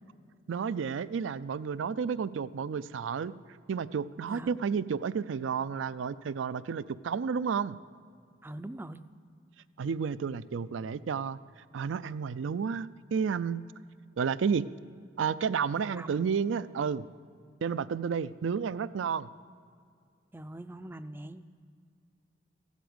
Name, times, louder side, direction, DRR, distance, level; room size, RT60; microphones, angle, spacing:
voice 1, 0.5-3.3 3.7-7.8 9.8-11.4 11.7-13.6 14.2-14.7 15.2-17.1 17.6-19.3, right 6 dB, 80° right, 17 dB, 0.4 m, -31 dB
voice 2, 4.3-4.6 8.4-9.0 15.9-16.1 20.3-21.5, right 1 dB, 10° right, 11 dB, 0.4 m, -42 dB
15.5 x 8.3 x 7.8 m, 2.2 s
head